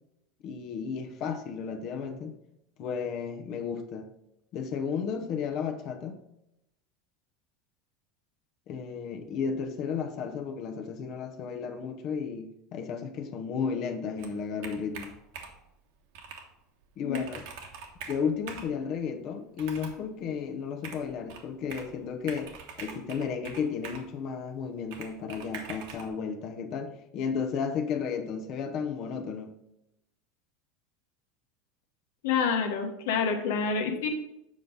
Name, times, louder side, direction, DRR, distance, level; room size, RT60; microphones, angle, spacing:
voice 1, 0.4-2.3 2.8-4.1 4.5-6.2 8.7-15.1 17.0-17.4 18.1-22.5 22.8-29.5, left 6 dB, 45° left, 0.9 m, -33 dB
Computer keyboard, 14.2-15.7 16.1-16.5 16.8-16.9 17.1-18.8 19.5-20.0 20.8-21.9 22.3-24.1 24.9-26.1, right 6 dB, 75° right, 1.2 m, -43 dB
voice 2, 32.2-34.1, left 6 dB, 85° left, 1.4 m, -27 dB
7.6 x 5.4 x 3.9 m
supercardioid pair, 145°, 0 cm